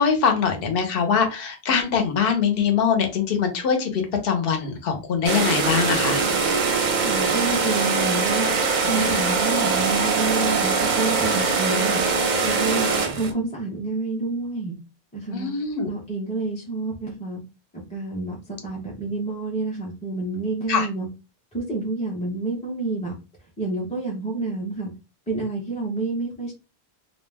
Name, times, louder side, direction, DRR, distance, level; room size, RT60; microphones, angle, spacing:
voice 1, 0.0-6.2 15.3-15.9 20.7-20.9, left 6 dB, 65° left, 4 dB, 0.9 m, -22 dB
sound 1, 5.2-13.3, right 4 dB, 55° right, 0.6 m, -22 dB
voice 2, 7.0-8.5 8.8-12.0 12.4-14.7 15.1-15.5 15.8-17.4 17.7-18.4 18.6-21.1 21.5-23.2 23.6-24.9 25.3-26.5, right 3 dB, 10° left, -4 dB, 0.5 m, -28 dB
2.3 x 2.1 x 3.3 m, 0.30 s
omnidirectional pair, 1.1 m